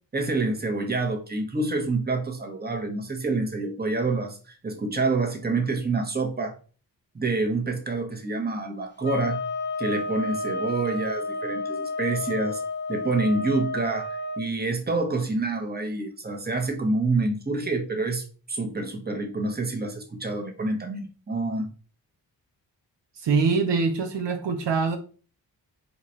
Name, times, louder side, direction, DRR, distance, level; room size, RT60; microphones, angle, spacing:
voice 1, 0.1-6.5 7.1-9.4 9.8-12.6 12.9-21.7, right 3 dB, 20° right, 1.0 m, -27 dB
sound 1, 9.0-14.4, left 2 dB, 25° left, 0.5 m, -31 dB
voice 2, 23.2-25.0, right 4 dB, 70° right, 0.7 m, -24 dB
2.8 x 2.5 x 4.3 m
cardioid pair, 45°, 44 cm